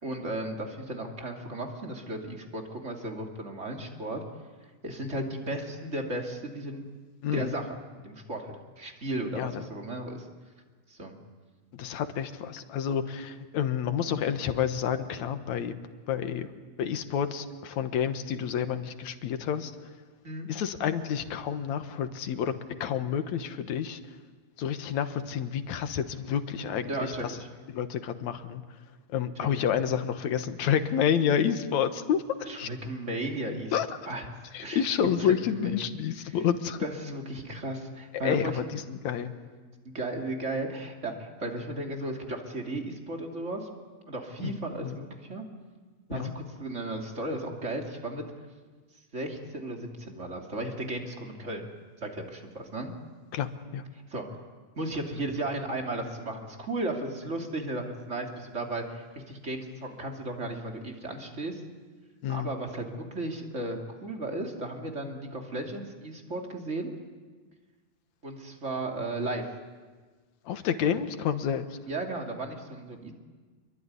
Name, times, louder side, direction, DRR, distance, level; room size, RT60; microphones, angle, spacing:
voice 1, 0.0-4.2 4.8-6.9 7.3-10.3 10.9-11.1 20.2-20.5 26.9-27.5 29.5-29.6 32.5-33.7 34.1-34.3 34.6-34.8 35.2-35.7 36.3-36.4 36.8-38.6 39.8-43.7 44.1-45.4 46.1-48.2 49.1-51.7 52.0-52.9 54.1-54.2 54.8-61.6 62.3-66.9 68.2-69.5 71.9-73.1, right 2 dB, 25° right, 2 dB, 2.8 m, -35 dB
voice 2, 7.2-7.6 9.3-9.7 11.7-15.7 16.1-16.5 16.8-19.7 20.5-22.5 22.8-24.0 24.6-27.4 27.7-28.6 29.1-32.7 33.7-33.9 34.5-36.8 38.2-39.3 44.4-44.5 44.8-45.0 46.1-46.3 53.3-53.8 62.2-62.5 70.5-71.8, left 8 dB, 75° left, 9 dB, 2.6 m, -29 dB
27.0 x 22.5 x 9.7 m, 1.4 s
omnidirectional pair, 3.4 m